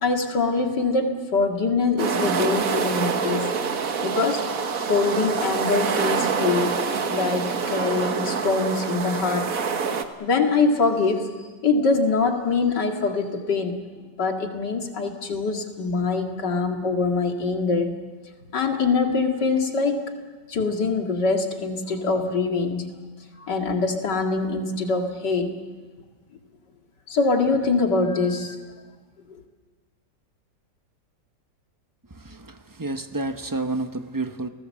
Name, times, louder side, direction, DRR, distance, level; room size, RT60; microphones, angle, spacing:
voice 1, 0.0-3.5 4.0-4.4 4.9-6.8 7.1-9.5 10.2-11.3 11.6-13.8 14.2-18.0 18.5-20.0 20.5-22.9 23.4-25.5 27.1-28.6 29.3-29.4, left 4 dB, 65° left, 4 dB, 2.8 m, -23 dB
sound 1, 2.0-10.0, right 5 dB, 50° right, 1.6 m, -26 dB
voice 2, 32.1-34.5, right 2 dB, 15° right, 8 dB, 0.7 m, -30 dB
30.0 x 19.0 x 7.6 m, 1.4 s
omnidirectional pair, 2.0 m